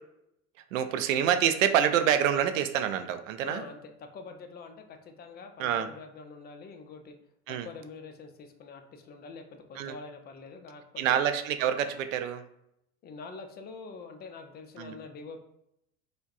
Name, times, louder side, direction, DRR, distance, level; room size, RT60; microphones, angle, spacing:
voice 1, 0.7-3.6 5.6-5.9 7.5-7.7 9.8-9.9 11.0-12.4 14.8-14.9, right 9 dB, 65° right, 9 dB, 0.5 m, -26 dB
voice 2, 3.4-7.2 7.5-11.2 13.0-15.4, left 4 dB, 25° left, 5 dB, 0.4 m, -45 dB
4.5 x 2.2 x 2.6 m, 0.78 s
figure-of-eight pair, 80°, 43 cm